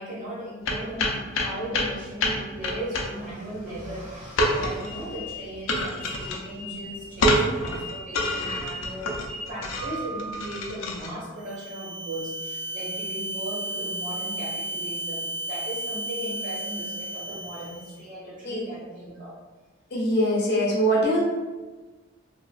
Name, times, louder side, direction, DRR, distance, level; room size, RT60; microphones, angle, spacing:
voice 1, 0.0-19.3, right 1 dB, 40° right, -7 dB, 1.2 m, -37 dB
sound 1, 0.7-11.1, left 1 dB, 80° left, 0.5 m, -27 dB
sound 2, 4.8-10.8, left 1 dB, 25° right, 0.4 m, -38 dB
sound 3, 11.4-18.0, right 1 dB, 75° right, 0.6 m, -33 dB
voice 2, 19.9-21.2, equal, 55° left, -4 dB, 0.8 m, -22 dB
2.9 x 2.5 x 2.3 m, 1.3 s
head